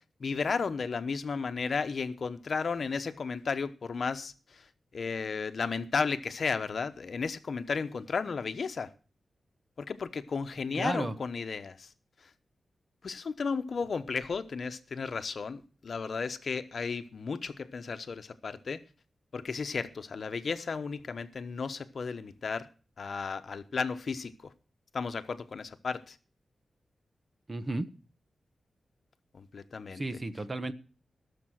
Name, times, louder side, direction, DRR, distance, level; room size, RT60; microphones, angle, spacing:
voice 1, 0.2-4.6 4.9-8.9 9.8-11.9 13.0-18.8 19.3-22.7 23.0-24.5 24.9-26.1 29.3-30.0, left 5 dB, 65° left, 0.9 m, -34 dB
voice 2, 10.7-11.1 27.5-27.9 29.9-30.7, right 2 dB, 30° right, 1.1 m, -33 dB
17.0 x 6.9 x 6.3 m
cardioid pair, 70°, 0 cm